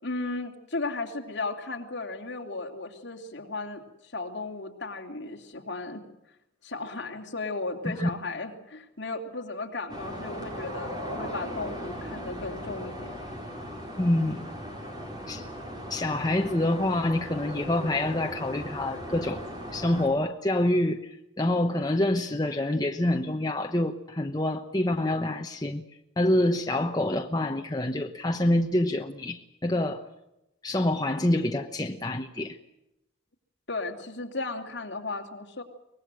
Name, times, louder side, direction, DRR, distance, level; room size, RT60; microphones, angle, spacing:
voice 1, 0.0-6.1 6.6-13.2 33.7-35.6, left 3 dB, 60° left, 1 dB, 3.1 m, -35 dB
sound 1, 9.9-20.1, equal, 20° right, 4.4 m, -38 dB
voice 2, 14.0-14.5 15.3-15.4 15.9-19.4 19.7-25.8 26.2-30.0 30.6-32.6, left 1 dB, 20° left, 4 dB, 1.0 m, -26 dB
24.5 x 20.0 x 7.8 m, 0.88 s
head